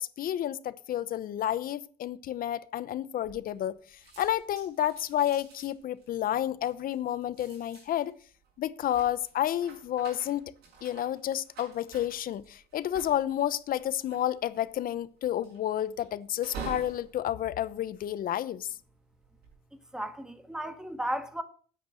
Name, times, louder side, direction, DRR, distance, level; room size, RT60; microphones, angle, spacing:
voice 1, 0.0-8.1 8.6-10.4 10.8-18.7, left 11 dB, 60° left, 0.8 m, -30 dB
sound 1, 3.2-3.7 4.0-18.6 19.1-19.5, right 5 dB, 75° right, 7.2 m, -48 dB
voice 2, 19.9-21.4, right 1 dB, 5° right, 1.5 m, -34 dB
9.6 x 8.2 x 6.4 m
cardioid pair, 110°, 17 cm